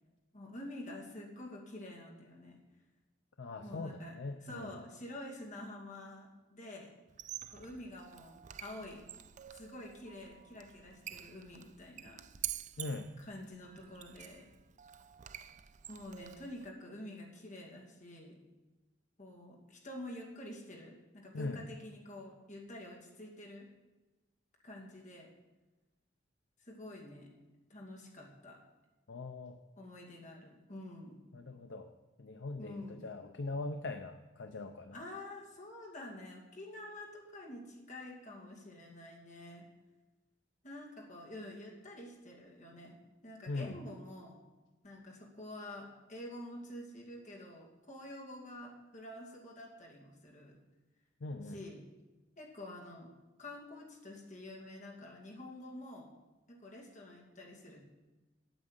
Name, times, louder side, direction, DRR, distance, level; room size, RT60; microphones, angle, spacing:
voice 1, 0.3-2.6 3.6-4.2 4.5-6.9 7.5-9.0 9.5-12.2 13.3-14.5 15.9-18.4 19.2-23.7 24.6-25.3 26.6-27.3 27.7-28.6 29.8-31.2 32.6-33.1 34.9-39.7 40.6-43.0 43.2-44.4 44.8-50.6 51.5-51.8 52.4-53.1 53.4-56.1 56.5-57.9, left 1 dB, 45° left, -1 dB, 2.5 m, -48 dB
voice 2, 3.4-4.8 12.8-13.1 21.3-21.6 29.1-29.6 31.3-35.0 43.5-43.8 51.2-51.6, left 2 dB, 70° left, 7 dB, 0.6 m, -41 dB
Squeak, 7.1-16.7, right 12 dB, 40° right, 0.4 m, -48 dB
9.1 x 8.4 x 8.0 m, 1.1 s
head